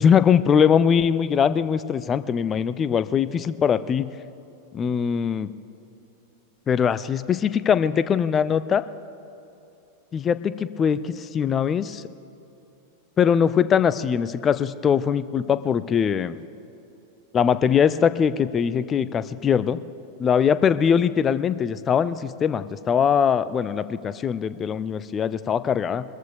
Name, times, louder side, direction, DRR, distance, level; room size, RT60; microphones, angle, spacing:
voice 1, 0.0-4.1 4.7-5.5 6.7-8.8 10.1-12.0 13.2-16.4 17.3-19.8 20.2-26.0, left 7 dB, 25° left, 15 dB, 0.5 m, -21 dB
23.0 x 14.0 x 3.4 m, 2.8 s
figure-of-eight pair, 90°, 0 cm